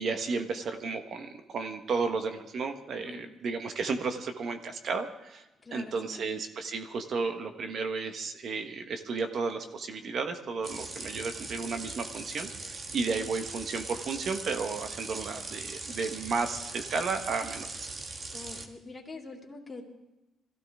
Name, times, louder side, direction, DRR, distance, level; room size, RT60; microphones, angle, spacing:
voice 1, 0.0-5.4 5.7-17.8, right 4 dB, 60° right, 6 dB, 1.3 m, -33 dB
voice 2, 3.0-3.3 5.6-6.2 18.3-19.8, left 3 dB, 20° left, 0 dB, 3.0 m, -44 dB
sound 1, 10.6-18.7, right 3 dB, 45° right, 1.6 m, -40 dB
21.5 x 15.5 x 3.6 m, 0.97 s
cardioid pair, 90°, 0 cm